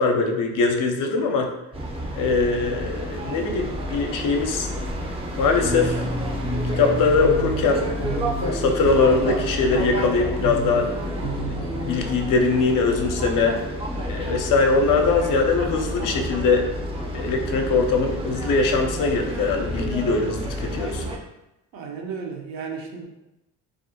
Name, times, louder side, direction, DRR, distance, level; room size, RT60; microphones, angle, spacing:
voice 1, 0.0-1.5 2.2-4.7 5.4-6.0 6.8-7.8 8.4-10.9 11.5-13.6 14.1-16.7 17.1-21.0, left 4 dB, 55° left, 3 dB, 0.5 m, -22 dB
sound 1, 1.7-21.2, equal, 15° right, 0.5 m, -30 dB
sound 2, 5.6-12.0, right 1 dB, 90° right, 1.0 m, -31 dB
voice 2, 21.7-23.1, right 5 dB, 60° right, 1 dB, 0.6 m, -33 dB
2.4 x 2.1 x 2.8 m, 0.90 s
supercardioid pair, 70°, 39 cm